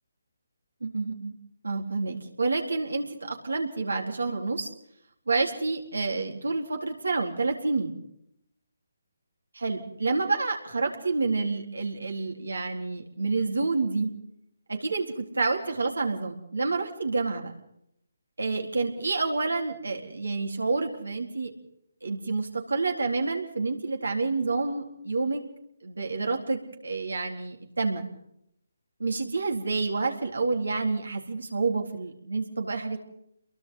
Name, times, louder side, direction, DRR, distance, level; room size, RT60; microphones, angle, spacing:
voice 1, 0.8-1.3 1.6-4.7 5.3-8.0 9.5-14.1 14.7-17.5 18.4-21.5 22.0-25.4 25.8-28.1 29.0-33.0, right 3 dB, 80° right, 2 dB, 4.1 m, -28 dB
30.0 x 23.0 x 4.0 m, 0.75 s
figure-of-eight pair, 150°, 0 cm